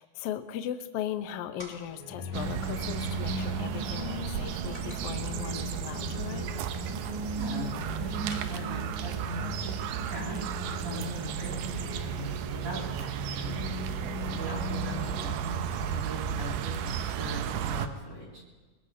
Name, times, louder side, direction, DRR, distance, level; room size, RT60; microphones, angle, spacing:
voice 1, 0.0-6.5, left 10 dB, 90° left, 9 dB, 1.3 m, -38 dB
sound 1, 1.0-9.9, equal, 5° left, 3.9 m, -55 dB
sound 2, 1.9-15.3, left 2 dB, 60° left, 3.7 m, -39 dB
sound 3, 2.3-17.9, right 9 dB, 90° right, 2.4 m, -34 dB
voice 2, 7.3-10.4 10.7-11.8 12.0-12.3 12.6-13.6 14.2-18.4, right 1 dB, 45° right, -4 dB, 3.3 m, -39 dB
22.5 x 20.5 x 2.7 m, 1.3 s
omnidirectional pair, 3.8 m